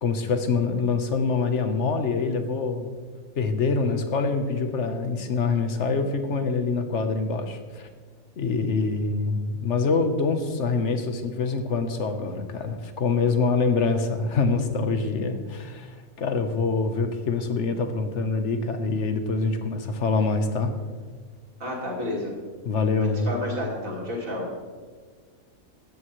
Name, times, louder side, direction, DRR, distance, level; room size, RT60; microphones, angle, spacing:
voice 1, 0.0-3.0 3.4-7.9 8.4-20.7 22.6-23.3, left 4 dB, 55° left, 7 dB, 1.4 m, -25 dB
voice 2, 21.6-22.3 23.0-24.5, left 1 dB, 70° right, -2 dB, 3.5 m, -31 dB
16.5 x 12.5 x 3.2 m, 1.5 s
omnidirectional pair, 1.5 m